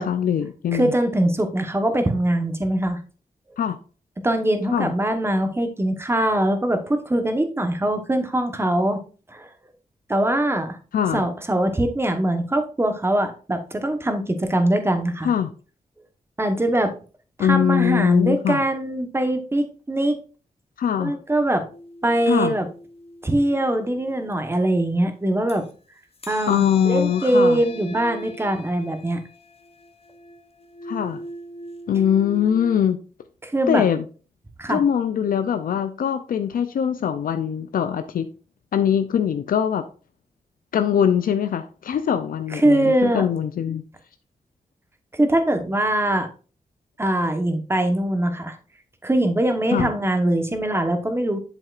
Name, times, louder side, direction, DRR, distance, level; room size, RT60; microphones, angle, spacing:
voice 1, 0.0-0.9 3.6-3.8 4.7-4.9 10.9-11.3 15.2-15.5 17.4-18.6 20.8-21.1 22.3-22.6 26.5-27.6 30.9-31.2 31.9-33.0 33.7-34.0 34.7-38.3 38.7-39.8 40.7-43.8 49.7-49.9, left 8 dB, 85° left, 0.5 m, -22 dB
voice 2, 0.7-3.0 4.2-9.0 9.3-9.5 10.1-10.8 11.1-15.3 16.4-16.9 17.4-20.2 21.0-21.6 22.0-22.7 23.2-25.6 26.3-29.2 33.4-33.8 34.6-34.8 42.5-43.3 45.1-46.3 47.0-48.6 49.0-51.4, right 1 dB, 15° right, 1.1 m, -22 dB
sound 1, 21.7-25.7 26.1-32.8, equal, 45° left, 0.9 m, -41 dB
7.9 x 7.3 x 2.5 m
wide cardioid pair, 105°, 14 cm